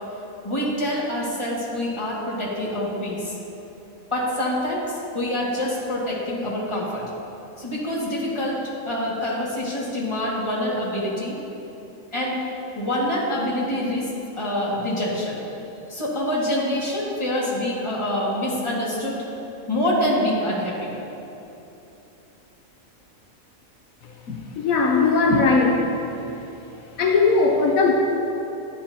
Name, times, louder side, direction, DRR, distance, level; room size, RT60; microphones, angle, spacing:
voice 1, 0.4-3.3 4.1-4.8 5.1-7.0 7.6-11.4 12.1-12.4 12.8-14.1 14.4-15.4 15.9-19.2 19.7-20.9, left 1 dB, 20° left, -6 dB, 2.0 m, -26 dB
voice 2, 24.3-25.9 27.0-27.9, left 4 dB, 80° left, 1 dB, 1.2 m, -19 dB
12.0 x 11.0 x 2.8 m, 3.0 s
omnidirectional pair, 1.4 m